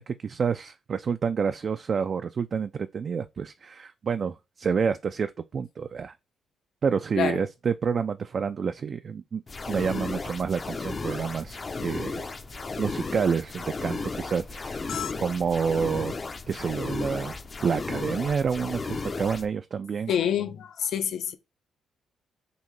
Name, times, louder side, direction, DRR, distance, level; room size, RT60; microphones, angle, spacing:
voice 1, 0.0-6.1 6.8-9.4 9.7-12.3 12.8-14.9 15.2-16.1 16.5-17.3 17.6-20.1, right 6 dB, 45° right, 0.3 m, -28 dB
sound 1, 9.5-19.5, left 4 dB, 30° left, 0.5 m, -34 dB
voice 2, 20.1-21.3, left 9 dB, 70° left, 0.6 m, -27 dB
5.1 x 2.8 x 3.2 m
cardioid pair, 90°, 0 cm